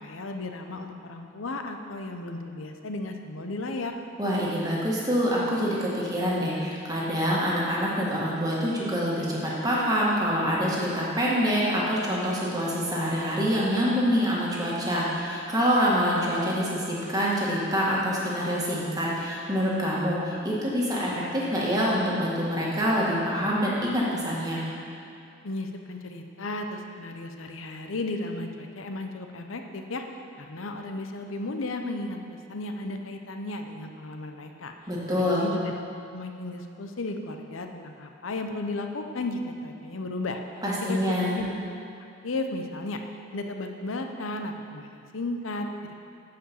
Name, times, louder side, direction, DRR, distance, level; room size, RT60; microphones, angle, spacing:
voice 1, 0.0-4.0 25.4-30.0 30.4-34.7 35.2-35.7 36.1-40.4 40.8-41.5 42.0-43.0 43.3-45.9, left 2 dB, 90° left, 5 dB, 0.8 m, -34 dB
voice 2, 4.2-24.6 34.9-35.5 40.6-41.4, equal, 20° right, -5 dB, 1.7 m, -26 dB
8.7 x 5.1 x 7.0 m, 2.7 s
head